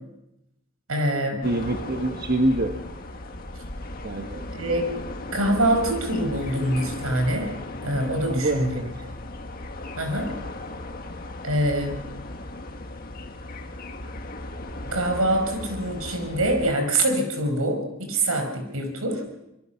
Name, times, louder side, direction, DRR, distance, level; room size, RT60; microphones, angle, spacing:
voice 1, 0.9-1.5 4.5-4.8 5.3-7.5 7.8-8.7 10.0-10.3 11.4-12.0 14.9-19.2, right 1 dB, 80° right, 5 dB, 5.2 m, -24 dB
sound 1, 1.4-16.7, left 2 dB, 40° left, 1.8 m, -36 dB
voice 2, 1.4-2.8 4.0-4.4 8.2-9.1, right 1 dB, 40° right, 4 dB, 1.3 m, -26 dB
25.0 x 22.0 x 5.7 m, 0.87 s
head